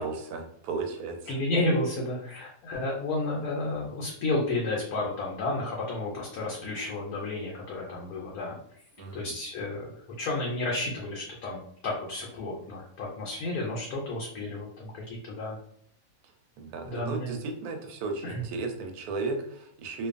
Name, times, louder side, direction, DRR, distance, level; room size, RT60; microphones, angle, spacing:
voice 1, 0.0-1.4 9.0-9.3 16.6-20.1, right 4 dB, 85° right, 4 dB, 1.1 m, -35 dB
voice 2, 1.3-8.6 9.1-15.6 16.9-17.4 18.2-18.4, left 2 dB, 85° left, -3 dB, 1.1 m, -32 dB
2.5 x 2.3 x 2.4 m, 0.65 s
omnidirectional pair, 1.5 m